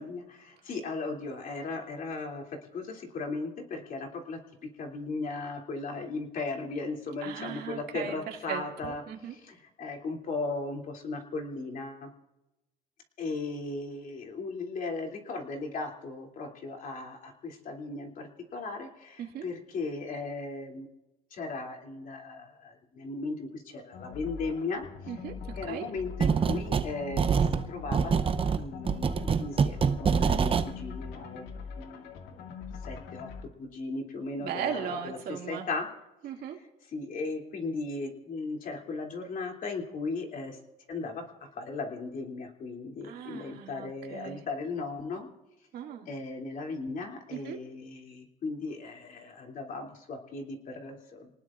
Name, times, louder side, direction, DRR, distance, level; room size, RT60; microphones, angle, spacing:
voice 1, 0.0-4.4 4.8-9.0 9.3-12.1 13.2-20.9 21.3-24.9 25.6-28.1 28.6-31.5 31.8-32.4 32.8-33.3 33.6-35.9 36.9-40.6 40.9-45.3 46.1-51.3, left 3 dB, 55° left, 1 dB, 2.9 m, -37 dB
voice 2, 7.2-8.2 8.5-9.4 19.2-19.4 25.1-25.9 34.4-35.6 36.2-36.6 43.0-44.4 45.7-46.1 47.3-47.6, right 8 dB, 65° right, 2 dB, 2.3 m, -38 dB
sound 1, 23.9-33.4, left 5 dB, 80° left, 2.1 m, -43 dB
sound 2, 26.2-26.9 27.2-30.7, right 6 dB, 30° right, 0.7 m, -25 dB
27.5 x 19.0 x 2.5 m, 0.99 s
cardioid pair, 110°, 17 cm